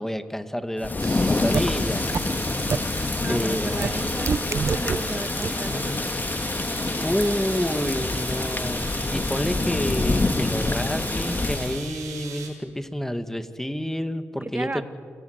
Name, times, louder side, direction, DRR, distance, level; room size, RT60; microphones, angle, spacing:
voice 1, 0.0-2.1 3.3-4.2 7.0-14.8, equal, 5° left, 10 dB, 2.1 m, -29 dB
Thunder / Rain, 0.8-11.9, left 2 dB, 30° left, 1.7 m, -26 dB
sound 1, 1.0-12.5, right 6 dB, 85° right, 5.5 m, -39 dB
sound 2, 1.5-1.6 2.1-2.2 2.7-2.8 3.8-3.9 4.3-5.0 5.4-5.5, right 5 dB, 55° right, 0.8 m, -23 dB
voice 2, 3.2-6.0 7.2-7.8 8.2-8.5 14.4-14.8, right 2 dB, 30° right, 11 dB, 1.3 m, -35 dB
28.5 x 20.0 x 8.2 m, 2.1 s
supercardioid pair, 45°, 6 cm